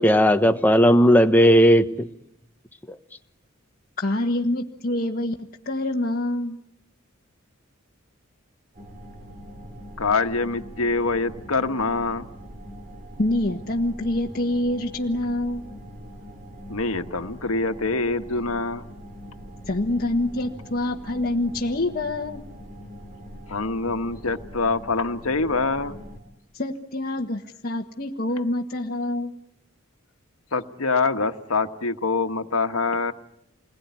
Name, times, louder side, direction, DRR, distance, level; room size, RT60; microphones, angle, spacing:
voice 1, 0.0-2.1, equal, 10° left, 6 dB, 1.1 m, -16 dB
voice 2, 4.0-6.6 13.2-15.7 19.7-22.4 26.5-29.3, left 1 dB, 45° left, -1 dB, 1.5 m, -26 dB
sound 1, 8.7-26.2, equal, 40° right, 3.8 m, -42 dB
voice 3, 10.0-12.3 16.7-18.8 23.5-26.0 30.5-33.1, left 3 dB, 80° left, 7 dB, 1.4 m, -25 dB
28.5 x 21.5 x 9.7 m, 0.78 s
head